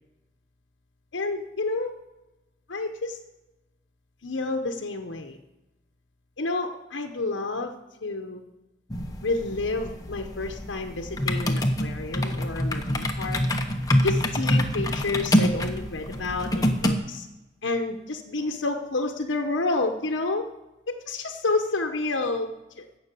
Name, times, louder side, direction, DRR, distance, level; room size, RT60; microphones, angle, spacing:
voice 1, 1.1-1.9 2.7-3.2 4.2-5.4 6.4-7.7 8.0-8.4 9.2-13.4 14.0-17.3 17.6-20.5 20.9-22.9, left 3 dB, 90° left, 4 dB, 0.9 m, -29 dB
sound 1, 8.9-17.0, equal, 20° left, 1.0 m, -26 dB
16.5 x 6.5 x 6.7 m, 1.0 s
head